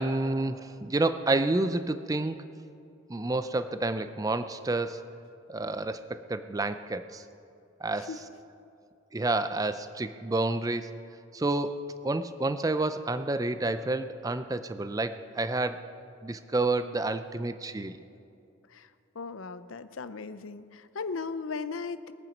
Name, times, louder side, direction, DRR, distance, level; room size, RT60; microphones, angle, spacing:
voice 1, 0.0-2.4 3.1-5.0 5.5-7.2 7.8-8.1 9.1-10.9 11.3-15.8 16.2-18.0, right 2 dB, 15° right, 11 dB, 0.4 m, -29 dB
voice 2, 19.1-22.1, left 4 dB, 80° left, 12 dB, 0.6 m, -37 dB
21.0 x 8.9 x 5.2 m, 2.5 s
head